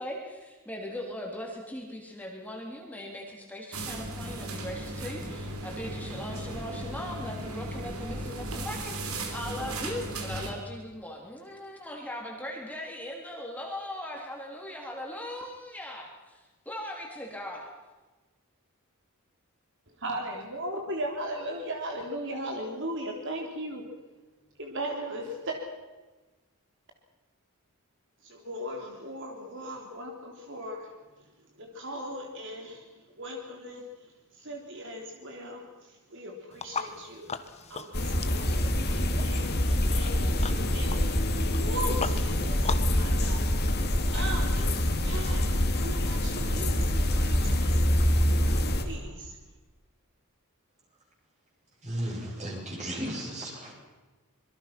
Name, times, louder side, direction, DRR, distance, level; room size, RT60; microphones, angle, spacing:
voice 1, 0.0-17.7, left 1 dB, 5° left, -1 dB, 3.2 m, -39 dB
sound 1, 3.7-10.5, right 1 dB, 75° right, 3.6 m, -36 dB
voice 2, 20.0-23.8 24.6-25.6 28.2-30.9 31.6-33.8 34.3-37.3 37.7-47.8 48.4-49.4, right 1 dB, 60° right, 1 dB, 3.3 m, -38 dB
sound 2, 36.5-43.0, left 5 dB, 30° left, 1.2 m, -39 dB
sound 3, 37.9-48.8, left 1 dB, 50° left, 2.6 m, -26 dB
voice 3, 51.8-53.7, right 1 dB, 30° right, -2 dB, 7.9 m, -35 dB
26.5 x 22.5 x 6.0 m, 1.2 s
head